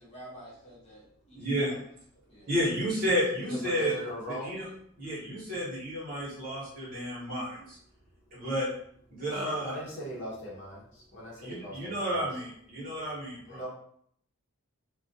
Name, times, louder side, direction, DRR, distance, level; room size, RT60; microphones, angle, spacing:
voice 1, 0.0-1.9 2.1-2.5, right 1 dB, 25° left, -7 dB, 0.9 m, -49 dB
voice 2, 1.3-1.7 2.5-3.9 4.4-4.6 5.0-7.8 8.3-8.7 9.1-9.8 11.4-13.6, equal, 40° right, -7 dB, 1.0 m, -31 dB
voice 3, 3.5-4.6 9.3-10.8 11.1-12.2 13.5-13.7, equal, 55° left, -5 dB, 0.8 m, -39 dB
2.3 x 2.2 x 2.6 m, 0.66 s
head